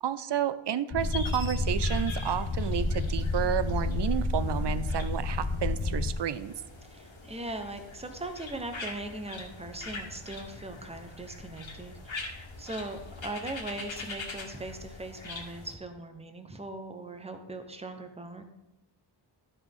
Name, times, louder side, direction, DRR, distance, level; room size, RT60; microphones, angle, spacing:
voice 1, 0.0-6.5, right 9 dB, 60° right, 14 dB, 0.6 m, -31 dB
sound 1, 0.9-6.1, left 3 dB, 40° left, 0.7 m, -30 dB
sound 2, 1.0-15.8, left 3 dB, 75° left, 1.6 m, -43 dB
voice 2, 6.8-18.4, right 2 dB, 15° right, 6 dB, 0.9 m, -40 dB
12.0 x 5.5 x 3.5 m, 0.98 s
wide cardioid pair, 85°, 46 cm